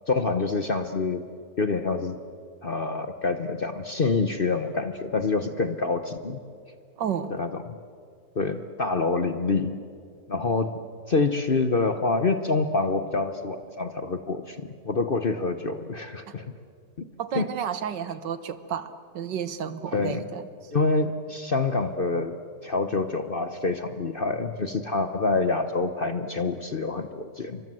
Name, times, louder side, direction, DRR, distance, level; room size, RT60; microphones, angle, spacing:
voice 1, 0.1-1.2 1.6-2.2 2.6-6.4 7.3-7.5 8.4-9.8 10.3-10.8 11.1-16.4 17.0-17.1 17.3-17.5 19.9-20.2 20.7-22.4 22.6-27.6, left 3 dB, 40° left, 8 dB, 0.9 m, -26 dB
voice 2, 7.0-7.4 16.3-16.4 17.2-20.7, right 8 dB, 80° right, 11 dB, 1.8 m, -32 dB
29.5 x 24.5 x 7.7 m, 2.3 s
omnidirectional pair, 1.9 m